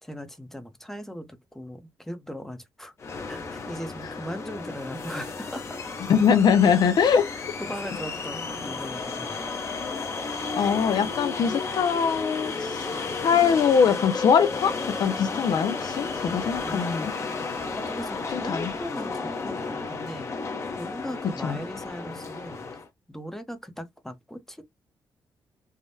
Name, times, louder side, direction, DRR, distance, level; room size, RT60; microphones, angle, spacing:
voice 1, 0.0-2.9 3.3-5.8 7.3-9.4 16.6-17.5 17.7-20.5 20.8-22.7 23.1-24.6, equal, 5° left, 0.7 m, -39 dB
sound 1, 3.0-22.9, left 4 dB, 35° left, 0.8 m, -33 dB
voice 2, 6.1-7.3 10.5-12.8 13.2-17.1 18.3-18.7 21.4-21.6, left 7 dB, 60° left, 0.5 m, -22 dB
3.4 x 2.1 x 2.6 m
cardioid pair, 125°, 8 cm